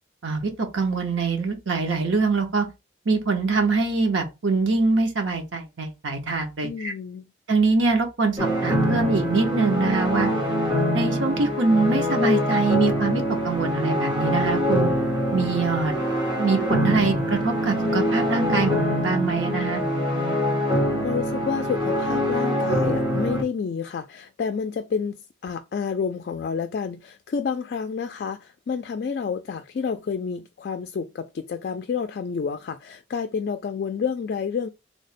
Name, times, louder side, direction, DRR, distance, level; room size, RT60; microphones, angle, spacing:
voice 1, 0.2-2.7 3.1-6.9 7.5-10.3 10.9-14.9 15.3-16.0 16.4-19.8, right 3 dB, 80° right, 0.9 m, -24 dB
voice 2, 6.6-7.3 21.0-34.7, left 6 dB, 55° left, 0.3 m, -29 dB
sound 1, 8.4-23.4, equal, 25° right, 1.1 m, -24 dB
3.3 x 2.1 x 4.0 m
head